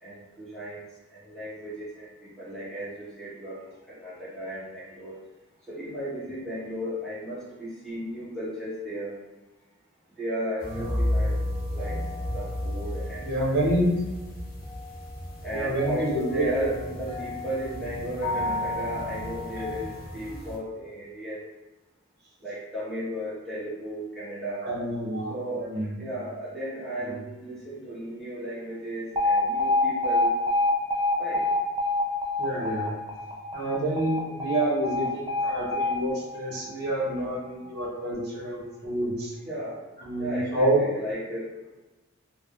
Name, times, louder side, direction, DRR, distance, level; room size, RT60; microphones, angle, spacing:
voice 1, 0.0-3.6 3.9-5.2 5.7-9.1 10.2-11.4 11.7-12.0 12.3-13.3 13.6-13.8 15.4-21.5 22.4-24.7 25.3-25.7 26.0-30.3 31.2-31.4 39.4-39.8 40.2-41.6, right 1 dB, ahead, -10 dB, 1.1 m, -35 dB
sound 1, 10.6-20.6, left 1 dB, 40° left, 0.8 m, -32 dB
voice 2, 13.2-13.9 15.5-16.4 24.6-25.9 27.0-27.1 32.4-33.0 33.5-39.3 40.0-41.0, right 1 dB, 50° right, -4 dB, 0.9 m, -28 dB
Alarm, 29.2-37.2, left 2 dB, 20° right, 0.3 m, -27 dB
3.4 x 2.0 x 2.3 m, 1.1 s
head